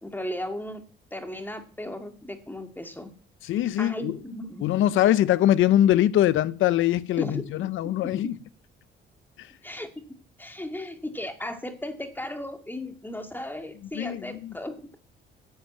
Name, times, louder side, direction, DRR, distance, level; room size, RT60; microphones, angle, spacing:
voice 1, 0.0-0.8 1.1-3.1 3.8-4.7 7.2-7.4 8.2-8.3 9.6-14.9, left 1 dB, 10° left, 2.3 m, -36 dB
voice 2, 3.4-4.2 4.6-8.4 9.4-9.5 13.9-14.5, left 12 dB, 80° left, 0.8 m, -22 dB
11.5 x 7.2 x 9.0 m
cardioid pair, 90°, 20 cm